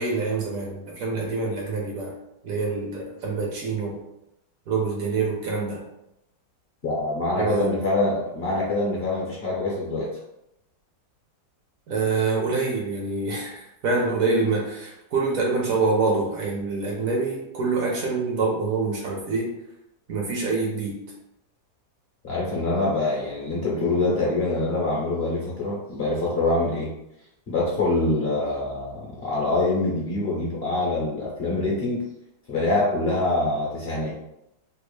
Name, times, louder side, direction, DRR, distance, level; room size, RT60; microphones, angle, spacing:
voice 1, 0.0-2.1 2.4-4.0 4.7-5.8 7.3-7.7 11.9-19.6 20.1-21.0, right 3 dB, 65° right, -1 dB, 1.0 m, -26 dB
voice 2, 6.8-10.1 22.2-26.9 27.5-32.0 32.5-34.1, left 2 dB, 50° left, -5 dB, 0.8 m, -25 dB
3.3 x 2.4 x 3.1 m, 0.85 s
omnidirectional pair, 1.8 m